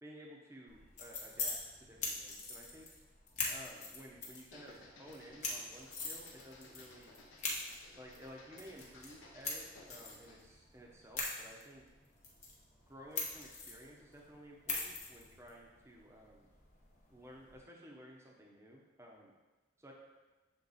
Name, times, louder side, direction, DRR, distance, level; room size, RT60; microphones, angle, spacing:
voice 1, 0.0-2.9 3.5-7.1 7.9-11.8 12.9-16.5 17.1-19.3 19.8-19.9, equal, 15° right, -2 dB, 0.9 m, -54 dB
sound 1, 0.7-17.6, left 3 dB, 35° left, 1.1 m, -44 dB
sound 2, 4.3-10.5, left 2 dB, 80° left, 1.0 m, -58 dB
7.1 x 3.7 x 4.1 m, 1.2 s
head